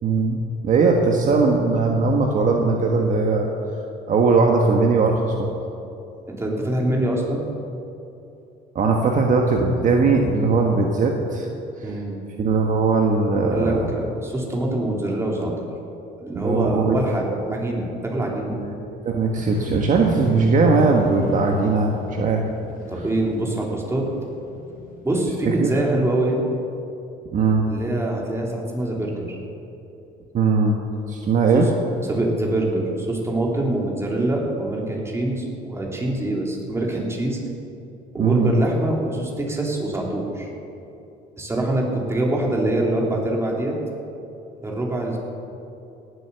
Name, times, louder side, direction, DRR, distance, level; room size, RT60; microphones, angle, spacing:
voice 1, 0.0-3.5 4.1-5.5 8.7-11.5 11.8-11.9 12.4-13.9 16.3-16.9 17.3-17.5 18.5-22.5 23.0-23.1 25.4-25.7 27.3-27.7 30.3-30.8 31.1-31.7 38.2-38.5, right 4 dB, 50° right, 1 dB, 1.4 m, -19 dB
voice 2, 6.3-7.4 11.8-12.2 13.5-15.7 16.2-18.6 22.9-24.0 25.0-26.4 27.7-29.4 31.5-31.6 32.1-37.4 38.1-40.5 41.4-43.8 44.6-45.2, right 1 dB, 15° right, -2 dB, 3.2 m, -24 dB
sound 1, 19.3-25.6, left 5 dB, 55° left, 1.5 m, -35 dB
18.0 x 8.1 x 6.9 m, 2.8 s
cardioid pair, 110°, 17 cm